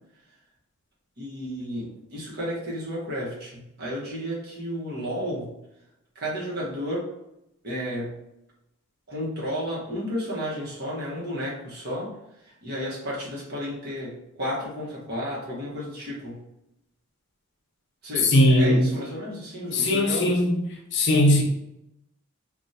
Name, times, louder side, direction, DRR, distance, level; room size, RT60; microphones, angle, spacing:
voice 1, 1.2-5.5 6.1-7.1 7.6-8.2 9.1-16.4 18.0-20.4, equal, 45° right, -6 dB, 1.0 m, -32 dB
voice 2, 18.2-18.9 19.7-20.6 20.9-21.4, left 1 dB, 50° left, 0 dB, 0.6 m, -19 dB
3.4 x 2.3 x 2.7 m, 0.87 s
head